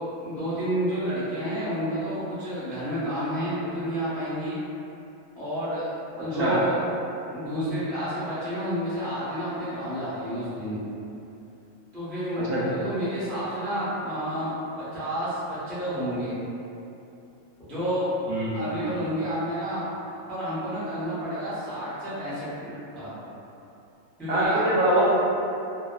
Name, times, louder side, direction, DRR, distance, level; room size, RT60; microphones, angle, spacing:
voice 1, 0.0-4.6 5.4-5.9 6.2-6.8 7.3-10.9 11.9-16.3 17.7-18.1 18.5-19.9 20.3-23.2 24.2-24.9, equal, ahead, -14 dB, 0.5 m, -30 dB
voice 2, 12.3-12.7 18.3-18.9 24.3-25.1, right 1 dB, 75° right, -8 dB, 1.1 m, -24 dB
2.7 x 2.2 x 2.3 m, 2.8 s
omnidirectional pair, 1.4 m